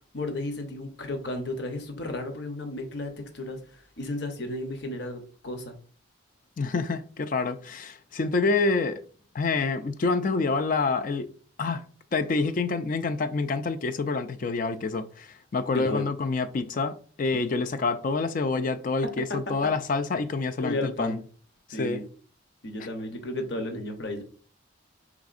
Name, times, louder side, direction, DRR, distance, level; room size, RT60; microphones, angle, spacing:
voice 1, 0.1-5.8 15.7-16.1 19.3-19.4 20.6-21.2 21.7-22.0 22.6-24.2, left 1 dB, 55° left, 0.8 m, -33 dB
voice 2, 6.6-9.0 9.3-11.3 11.6-11.8 12.1-21.2 21.7-22.0, left 3 dB, 40° left, 0.3 m, -27 dB
4.9 x 3.5 x 2.5 m
head